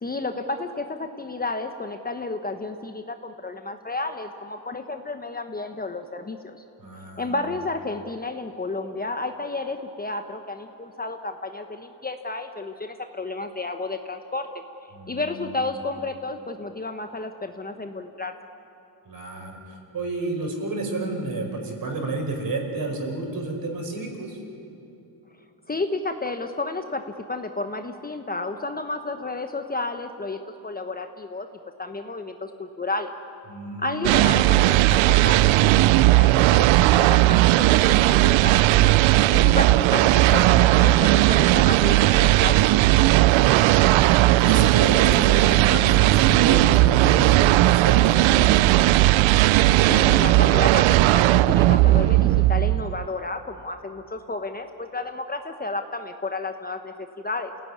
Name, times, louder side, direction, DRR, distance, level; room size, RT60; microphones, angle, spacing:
voice 1, 0.0-6.6 7.2-14.5 14.8-18.3 25.7-31.5 31.8-33.1 33.8-39.0 39.3-42.7 49.5-57.5, left 3 dB, 20° left, 7 dB, 1.1 m, -32 dB
voice 2, 6.8-7.4 14.9-15.7 19.1-24.4 33.5-34.1 43.1-48.5, right 2 dB, 50° right, 3 dB, 5.2 m, -31 dB
sound 1, 34.0-53.1, right 16 dB, 85° right, 0.6 m, -17 dB
28.0 x 17.0 x 9.7 m, 2.9 s
cardioid pair, 115°, 45 cm